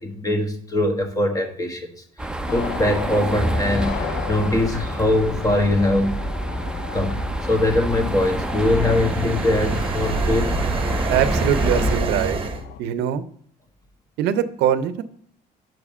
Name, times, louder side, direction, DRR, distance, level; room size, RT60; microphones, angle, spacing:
voice 1, 0.0-1.9 2.2-6.2 6.9-10.5, left 1 dB, 20° left, 5 dB, 1.3 m, -22 dB
sound 1, 2.2-12.0, right 1 dB, 5° right, 0.6 m, -27 dB
sound 2, 2.5-12.8, left 8 dB, 90° left, 0.6 m, -36 dB
sound 3, 7.9-12.6, right 4 dB, 30° right, 1.0 m, -27 dB
voice 2, 11.1-12.4 12.8-13.2 14.2-15.0, right 9 dB, 85° right, 13 dB, 0.6 m, -22 dB
6.1 x 4.9 x 5.4 m, 0.63 s
cardioid pair, 110°, 17 cm